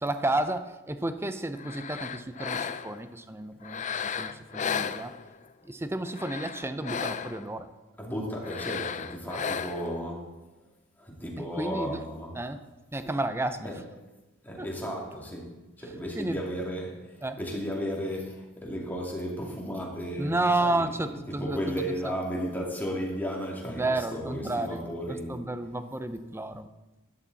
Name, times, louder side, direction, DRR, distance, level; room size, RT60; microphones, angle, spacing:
voice 1, 0.0-5.1 5.6-7.7 11.4-12.0 12.3-12.6 12.9-13.8 14.6-14.7 16.1-16.4 17.2-17.4 20.2-21.6 22.0-22.2 23.7-24.9 25.3-26.7, right 2 dB, 10° right, 10 dB, 0.6 m, -31 dB
sound 1, 1.6-3.1 3.6-5.5 6.0-7.5 8.4-10.0, left 7 dB, 35° left, 0.4 m, -34 dB
voice 2, 8.0-10.4 11.0-12.3 13.6-13.8 14.4-23.8 24.1-25.4, equal, 10° left, -2 dB, 2.5 m, -34 dB
13.0 x 11.0 x 4.1 m, 1.1 s
head